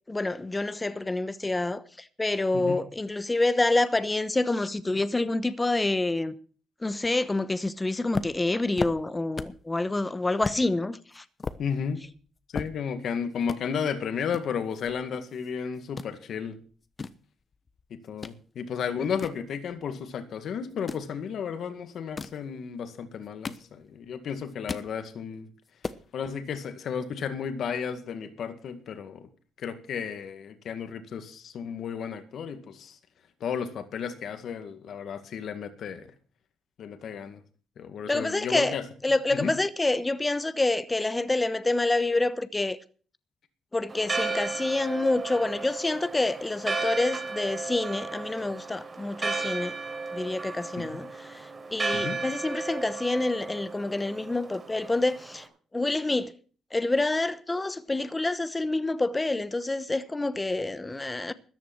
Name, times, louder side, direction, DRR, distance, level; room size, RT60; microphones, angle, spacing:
voice 1, 0.1-6.4 6.8-11.2 38.1-38.8 39.0-42.8 43.7-49.7 50.1-55.5 55.7-56.3 56.7-61.3, left 2 dB, 15° left, 1.0 m, -27 dB
sound 1, 8.1-9.7 10.0-10.1 10.4-10.6 11.1-13.1 13.4-13.6 14.3-15.5 15.8-16.1 16.7-18.4 18.8-20.1 20.7-21.1 21.9-22.4 23.1-24.1 24.4-24.9 25.3-25.4 25.6-26.0, left 4 dB, 35° left, 1.0 m, -36 dB
voice 2, 11.6-12.0 12.5-16.6 17.9-25.5 26.1-29.3 29.6-33.0 33.4-36.1 36.8-37.4 37.8-38.8 39.3-39.5 50.8-50.9 51.9-52.2, left 7 dB, 65° left, 2.0 m, -33 dB
Church bell, 43.9-55.5, right 3 dB, 30° right, 4.0 m, -34 dB
14.0 x 10.5 x 6.1 m
cardioid pair, 90°, 0 cm